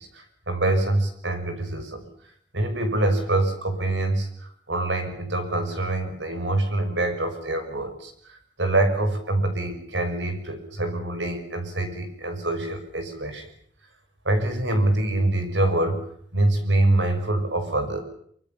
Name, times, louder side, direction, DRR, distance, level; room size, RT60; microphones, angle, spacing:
voice 1, 0.0-2.0 2.5-4.3 4.7-13.5 14.2-16.0 16.3-18.0, right 2 dB, 80° right, 7 dB, 6.3 m, -25 dB
24.5 x 24.5 x 7.3 m, 0.64 s
head